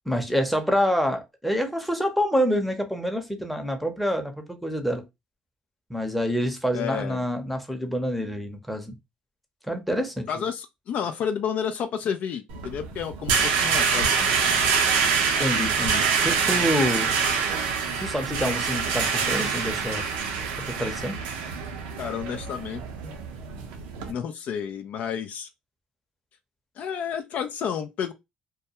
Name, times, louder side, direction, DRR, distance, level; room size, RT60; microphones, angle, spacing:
voice 1, 0.1-5.1 5.9-8.9 9.7-10.4 15.4-17.2 18.0-20.0 20.6-21.1, equal, ahead, 0.7 m, -27 dB
voice 2, 6.7-7.2 10.3-14.3 22.0-22.8 24.1-25.5 26.8-28.1, left 8 dB, 65° left, 0.3 m, -31 dB
sound 1, 12.5-24.1, right 5 dB, 90° right, 0.5 m, -25 dB
2.2 x 2.2 x 2.8 m
supercardioid pair, 80°, 3 cm